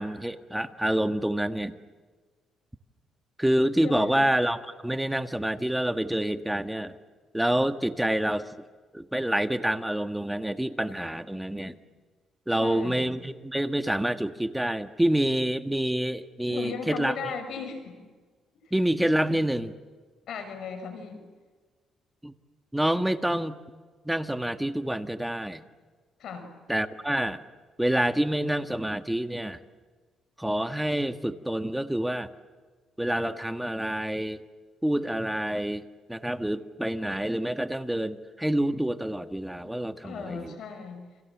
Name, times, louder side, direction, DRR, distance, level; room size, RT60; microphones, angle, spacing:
voice 1, 0.0-1.7 3.4-6.9 7.3-8.5 8.9-11.7 12.5-17.1 18.7-19.7 22.2-22.3 22.7-23.6 24.0-25.6 26.7-27.4 27.8-29.6 30.4-32.3 33.0-34.4 34.8-35.8 36.1-40.5, right 1 dB, 5° right, 8 dB, 1.6 m, -27 dB
voice 2, 3.8-4.2 12.6-13.1 16.5-18.0 20.3-21.2 26.2-26.5 40.0-41.0, left 5 dB, 70° left, 7 dB, 6.4 m, -37 dB
29.5 x 26.0 x 7.4 m, 1.4 s
cardioid pair, 90°, 0 cm